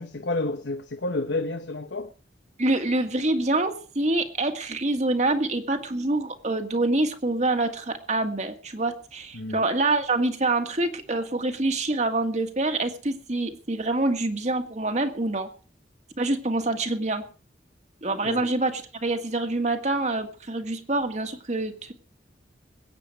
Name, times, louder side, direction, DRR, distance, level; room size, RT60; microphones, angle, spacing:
voice 1, 0.0-2.1 9.3-9.6 18.2-18.5, left 2 dB, 85° left, 1.0 m, -30 dB
voice 2, 2.6-15.5 16.2-17.2 18.0-21.9, right 2 dB, 40° right, 1.8 m, -26 dB
21.5 x 9.1 x 4.8 m
head